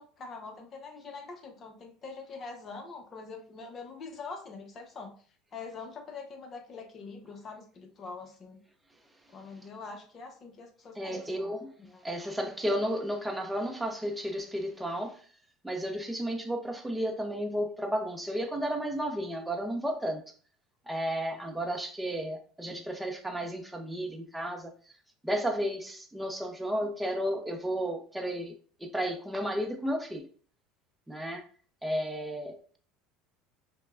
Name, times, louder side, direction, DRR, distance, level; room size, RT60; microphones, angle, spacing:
voice 1, 0.0-5.1 5.5-8.6 9.3-11.5 11.9-12.0, left 4 dB, 40° left, 3 dB, 0.9 m, -44 dB
voice 2, 11.0-11.7 12.0-15.2 15.6-20.2 20.9-24.7 25.2-28.5 28.8-30.3 31.1-31.4 31.8-32.8, equal, 5° right, 3 dB, 0.7 m, -33 dB
5.2 x 2.2 x 2.4 m, 0.43 s
hypercardioid pair, 85°, 0 cm